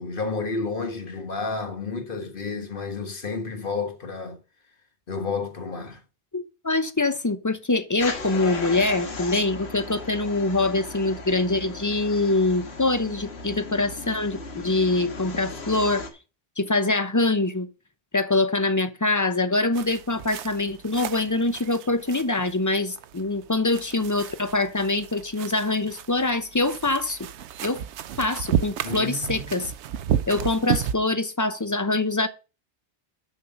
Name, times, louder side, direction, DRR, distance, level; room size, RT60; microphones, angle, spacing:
voice 1, 0.0-4.4 5.1-6.0 28.8-29.5, left 4 dB, 50° left, 1.5 m, -31 dB
voice 2, 6.3-16.1 16.6-17.7 18.1-27.2 27.6-27.8 28.2-29.7 30.3-32.3, left 2 dB, 20° left, 0.7 m, -24 dB
sound 1, 8.0-16.1, left 3 dB, 70° left, 1.6 m, -36 dB
sound 2, 19.7-30.9, right 9 dB, 85° right, 0.9 m, -32 dB
7.1 x 6.4 x 5.4 m
omnidirectional pair, 1.1 m